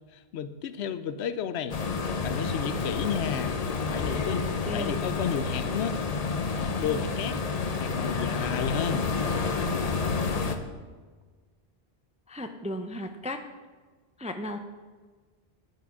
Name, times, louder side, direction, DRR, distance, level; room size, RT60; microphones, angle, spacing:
voice 1, 0.1-1.8 2.2-3.6 3.9-4.5 4.7-6.0 6.6-7.4 7.8-9.1, left 7 dB, 85° left, 12 dB, 0.9 m, -32 dB
sound 1, 1.7-10.6, left 4 dB, 45° left, 0.7 m, -29 dB
voice 2, 12.3-13.4 14.2-14.6, left 1 dB, 10° right, 6 dB, 0.3 m, -35 dB
8.8 x 5.9 x 6.0 m, 1.4 s
omnidirectional pair, 1.1 m